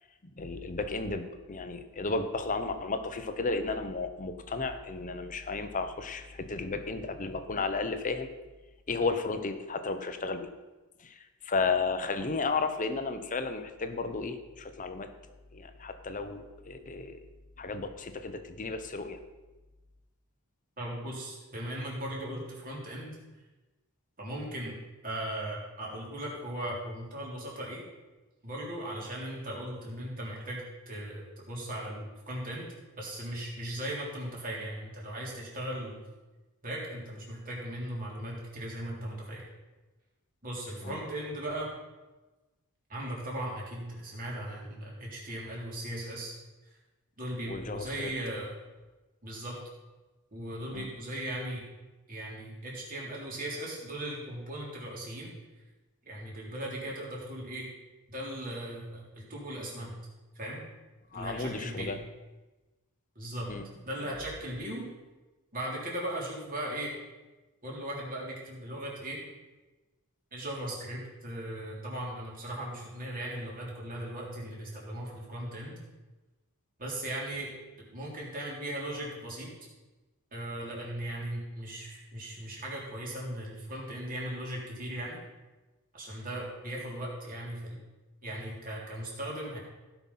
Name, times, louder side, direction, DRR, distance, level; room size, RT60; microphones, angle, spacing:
voice 1, 0.2-8.3 8.9-10.5 11.0-15.1 15.5-17.2 17.6-19.2 40.8-41.0 47.5-48.1 50.7-50.9 61.1-62.0 63.5-63.7, left 3 dB, 35° left, 8 dB, 0.9 m, -33 dB
voice 2, 20.8-23.2 24.2-24.8 25.0-27.8 28.4-32.7 33.0-35.9 36.6-39.4 40.4-41.7 42.9-46.3 47.2-48.5 49.2-49.6 50.3-51.6 52.1-55.3 56.1-57.7 58.1-59.9 60.4-60.6 61.1-61.9 63.2-63.5 63.9-64.9 65.5-67.0 67.6-69.2 70.3-75.8 76.8-77.5 77.9-79.5 80.3-85.2 85.9-87.8 88.2-89.6, right 1 dB, 40° right, -4 dB, 3.4 m, -38 dB
16.0 x 5.9 x 5.6 m, 1.2 s
head